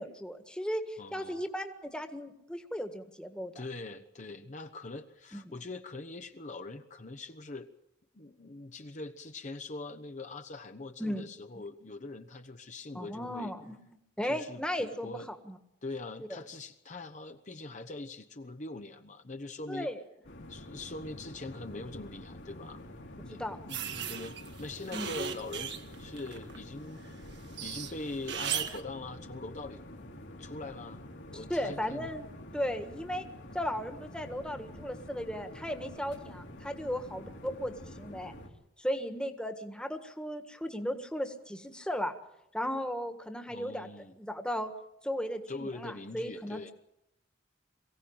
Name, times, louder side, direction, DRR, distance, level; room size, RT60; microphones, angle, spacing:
voice 1, 0.0-3.6 5.3-5.5 11.0-11.3 12.9-13.8 14.2-15.6 16.3-16.4 19.7-20.0 23.3-23.6 24.9-25.1 31.5-32.3 32.5-33.2 33.5-38.3 38.8-42.1 42.5-43.9 44.2-44.7 45.0-46.7, equal, 5° left, 7 dB, 1.6 m, -36 dB
voice 2, 1.0-1.4 3.5-7.7 8.1-13.5 14.2-15.3 15.8-19.9 20.5-22.9 23.2-27.2 27.6-29.8 30.4-32.1 43.5-44.2 45.5-46.7, left 2 dB, 40° left, 7 dB, 1.0 m, -43 dB
sound 1, 20.2-38.5, left 1 dB, 80° left, 3.3 m, -47 dB
sound 2, 23.7-26.6 27.0-28.8, right 8 dB, 65° right, 1.7 m, -37 dB
23.0 x 16.5 x 8.8 m, 0.81 s
head